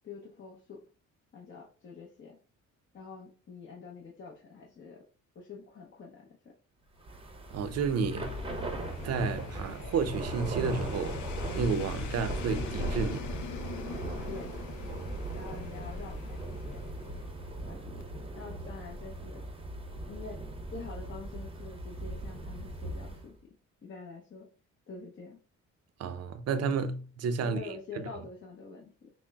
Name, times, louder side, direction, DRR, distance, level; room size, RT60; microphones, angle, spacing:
voice 1, 0.0-0.8 1.3-2.4 2.9-5.0 5.3-6.4 14.3-14.6 15.3-16.8 17.6-18.0 18.3-19.4 20.1-20.4 20.7-23.3 23.8-24.5 24.9-25.4 27.4-29.1, left 4 dB, 40° left, 0.8 m, -46 dB
Thunder / Rain, 7.0-23.3, right 2 dB, 20° right, 0.7 m, -39 dB
sound 1, 7.4-17.7 18.0-18.1, left 3 dB, 75° left, 0.5 m, -41 dB
voice 2, 7.5-8.4 9.0-11.2 11.5-13.3 26.0-28.1, right 5 dB, 55° right, 0.5 m, -31 dB
5.9 x 2.1 x 2.3 m
cardioid pair, 90°, 30 cm